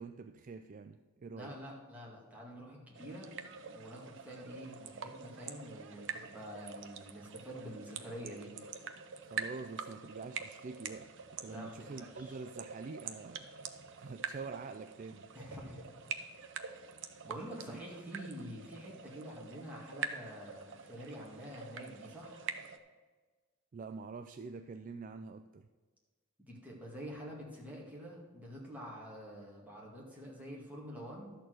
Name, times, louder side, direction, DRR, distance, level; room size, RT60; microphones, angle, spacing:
voice 1, 0.0-1.6 9.2-13.5 13.9-15.3 17.7-17.8 23.7-25.7, right 4 dB, 35° right, 9 dB, 0.3 m, -46 dB
voice 2, 1.3-3.3 3.7-8.5 11.4-12.4 15.3-15.9 17.2-22.5 26.4-31.3, equal, 5° right, -4 dB, 2.1 m, -47 dB
sound 1, 3.0-22.8, right 6 dB, 55° right, 0.7 m, -45 dB
12.0 x 4.4 x 7.7 m, 1.4 s
head